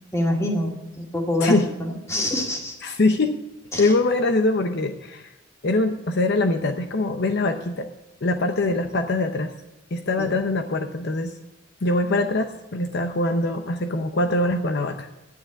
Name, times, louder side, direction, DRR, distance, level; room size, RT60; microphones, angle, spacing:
voice 1, 0.1-2.8 3.7-3.9 10.2-10.3, left 1 dB, 15° left, 0 dB, 2.2 m, -26 dB
voice 2, 2.8-3.4 3.8-5.3 5.6-7.9 8.2-9.5 9.9-11.3 11.8-15.1, left 2 dB, 55° left, 6 dB, 0.7 m, -23 dB
11.5 x 9.5 x 5.8 m, 0.99 s
head